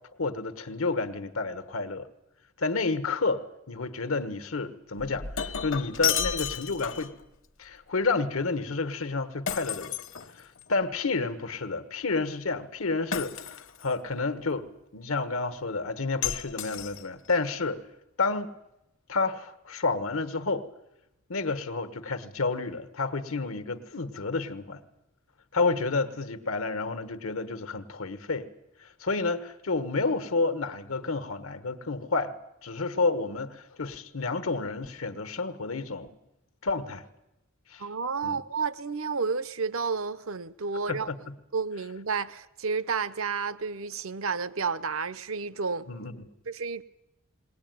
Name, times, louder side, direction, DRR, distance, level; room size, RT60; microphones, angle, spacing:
voice 1, 0.2-2.1 2.6-7.1 7.6-9.9 10.4-10.5 10.7-17.8 18.2-18.5 19.1-20.7 21.3-24.8 25.5-28.5 29.0-32.3 32.6-36.1 36.6-37.1 37.7-37.8 38.2-38.4 40.9-41.3 45.9-46.3, left 3 dB, 80° left, 1.4 m, -30 dB
Shatter, 5.0-7.2 9.5-10.7 13.1-13.9 16.2-17.3, left 8 dB, 65° left, 1.2 m, -32 dB
voice 2, 37.8-41.1 41.5-45.9 46.5-46.8, right 5 dB, 80° right, 0.8 m, -31 dB
20.5 x 18.5 x 9.3 m
head